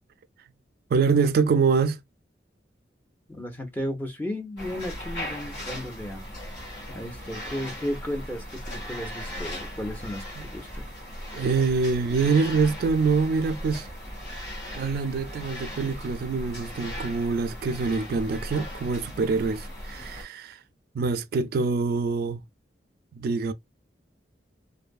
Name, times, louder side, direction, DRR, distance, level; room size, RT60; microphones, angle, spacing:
voice 1, 0.9-2.0 10.4-10.5 11.3-13.9 14.7-20.6 20.9-22.4 23.1-23.5, right 4 dB, 55° right, 0.3 m, -25 dB
voice 2, 3.3-6.2 6.9-10.9, equal, 10° left, 0.7 m, -34 dB
sound 1, 4.6-20.2, equal, 60° left, 1.6 m, -38 dB
2.6 x 2.4 x 2.2 m
head